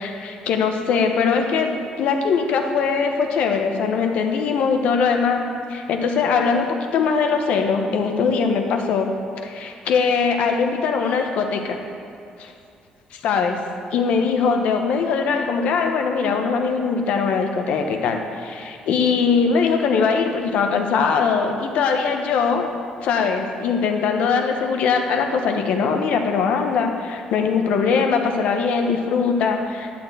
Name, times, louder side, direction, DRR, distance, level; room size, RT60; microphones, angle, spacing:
voice 1, 0.0-5.4 5.7-9.1 9.4-11.8 12.4-12.5 13.2-13.6 13.9-22.7 23.0-29.9, left 5 dB, 75° left, 4 dB, 1.1 m, -21 dB
11.0 x 4.4 x 7.9 m, 2.6 s
cardioid pair, 135°, 2 cm